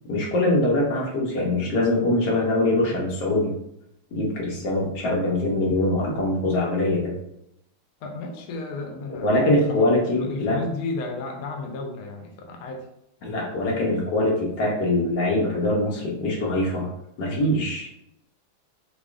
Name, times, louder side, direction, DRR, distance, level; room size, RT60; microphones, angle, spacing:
voice 1, 0.1-3.5 4.1-7.1 9.2-10.6 13.2-16.9 17.2-17.9, left 1 dB, 60° left, -2 dB, 1.4 m, -23 dB
voice 2, 8.0-12.9, left 3 dB, 90° left, 2 dB, 0.7 m, -33 dB
5.0 x 2.3 x 2.4 m, 0.79 s
omnidirectional pair, 2.2 m